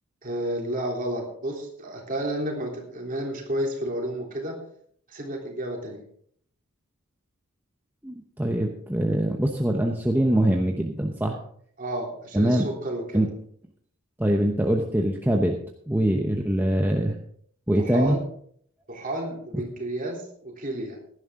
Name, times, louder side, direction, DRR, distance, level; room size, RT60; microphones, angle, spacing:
voice 1, 0.2-4.6 5.1-6.0 11.8-13.2 17.8-18.2 18.9-21.0, right 1 dB, 40° right, 0 dB, 3.4 m, -31 dB
voice 2, 8.0-11.4 12.3-12.7 13.1-13.3 14.2-15.6 15.9-17.2 17.7-18.2, right 1 dB, 10° right, 1 dB, 0.9 m, -23 dB
16.5 x 11.0 x 3.7 m, 0.63 s
head